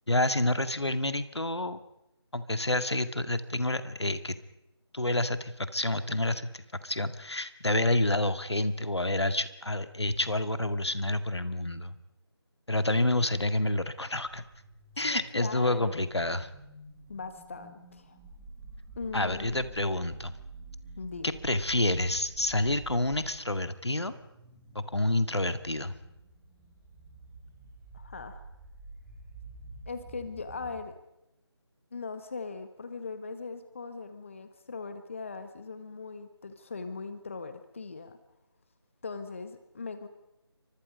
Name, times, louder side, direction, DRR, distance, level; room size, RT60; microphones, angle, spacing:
voice 1, 0.1-1.8 2.3-4.4 4.9-11.9 12.7-14.4 15.0-16.5 19.1-20.3 21.2-24.1 24.8-25.9, left 1 dB, 75° left, 11 dB, 2.1 m, -28 dB
spaceport operator number one five zero, 14.4-30.8, right 2 dB, 5° right, 3.2 m, -49 dB
voice 2, 14.9-16.0 17.1-18.2 19.0-19.7 21.0-21.4 27.9-28.5 29.8-30.9 31.9-38.2 39.0-40.1, left 4 dB, 30° left, 10 dB, 1.4 m, -40 dB
29.5 x 25.0 x 5.3 m, 0.87 s
figure-of-eight pair, 165°, 14 cm